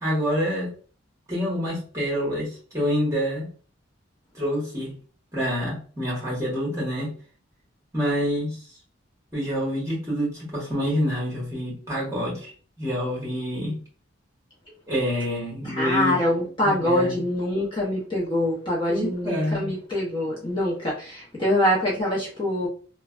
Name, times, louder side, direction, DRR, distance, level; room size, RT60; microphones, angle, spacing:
voice 1, 0.0-0.7 1.3-3.5 4.3-4.9 5.3-7.1 7.9-8.6 9.3-12.5 12.8-13.8 14.9-16.2 16.6-17.1 18.9-19.7, equal, 15° right, -5 dB, 1.2 m, -27 dB
voice 2, 15.6-22.7, left 1 dB, 25° left, -6 dB, 0.7 m, -24 dB
3.2 x 2.2 x 2.4 m, 0.41 s
head